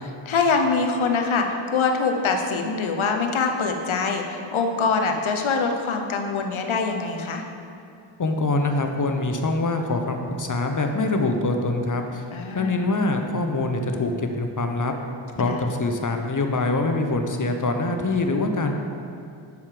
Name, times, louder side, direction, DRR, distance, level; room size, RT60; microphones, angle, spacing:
voice 1, 0.3-7.4 12.3-12.9 15.4-15.5, left 4 dB, 80° left, 4 dB, 0.9 m, -24 dB
voice 2, 8.2-12.2 12.5-14.9 15.4-18.8, left 2 dB, 40° left, 4 dB, 0.8 m, -24 dB
6.9 x 6.7 x 5.0 m, 2.6 s
cardioid pair, 60°, 47 cm